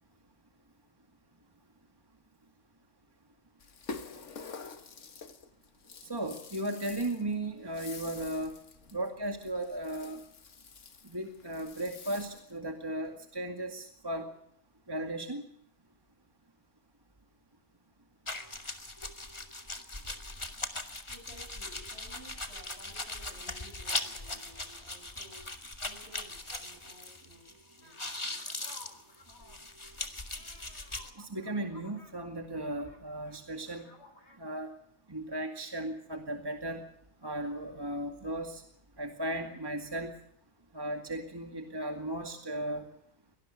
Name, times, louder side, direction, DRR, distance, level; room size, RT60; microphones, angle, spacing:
Rattle (instrument), 3.6-12.6, left 4 dB, 80° left, 1.8 m, -48 dB
voice 1, 6.0-8.5 8.9-10.2 11.0-14.3 14.9-15.4 31.2-33.9 34.4-34.7 35.1-36.8 37.2-38.6 39.0-40.1 40.7-42.9, right 1 dB, 20° right, 4 dB, 2.2 m, -36 dB
sound 1, 18.3-27.5 27.8-31.1, left 2 dB, 25° left, 2.0 m, -40 dB
voice 2, 21.1-28.0, equal, 60° right, 5 dB, 7.3 m, -55 dB
sound 2, 27.8-33.4 33.7-34.4, left 2 dB, 65° left, 4.4 m, -57 dB
24.0 x 19.0 x 6.5 m, 0.71 s
omnidirectional pair, 1.2 m